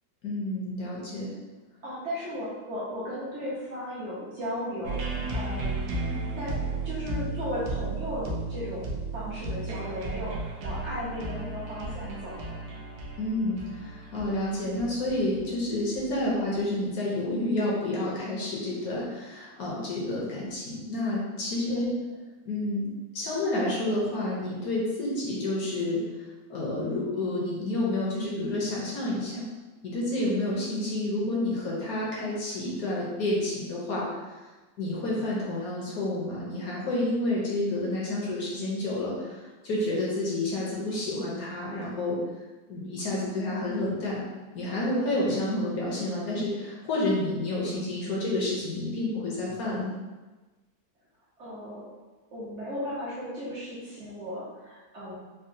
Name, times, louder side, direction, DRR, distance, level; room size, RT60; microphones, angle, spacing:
voice 1, 0.2-1.3 13.2-21.9 22.4-22.9 23.1-26.0 26.5-29.4 29.8-34.4 34.8-42.2 42.7-44.2 44.5-49.9, left 1 dB, 65° left, -5 dB, 1.0 m, -29 dB
voice 2, 1.8-6.0 6.4-12.6 21.7-21.9 51.4-51.8 52.3-55.1, equal, 55° right, -8 dB, 0.8 m, -36 dB
sound 1, 4.8-16.6, right 3 dB, 90° right, 1.4 m, -34 dB
3.9 x 2.0 x 2.6 m, 1.2 s
omnidirectional pair, 2.1 m